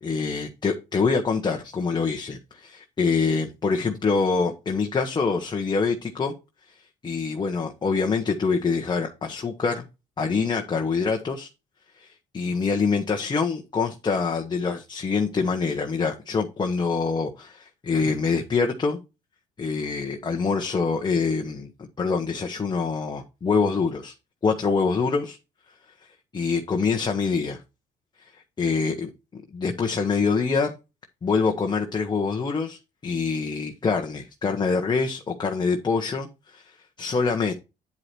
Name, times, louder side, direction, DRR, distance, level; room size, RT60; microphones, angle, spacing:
voice 1, 0.0-6.3 7.0-9.8 10.2-11.5 12.0-12.1 12.3-19.0 19.6-21.7 22.0-24.1 24.4-25.4 26.3-27.6 28.6-29.1 29.5-30.7 31.2-37.5, left 4 dB, 25° left, 1.2 m, -25 dB
9.7 x 4.9 x 4.4 m
cardioid pair, 110°, 17 cm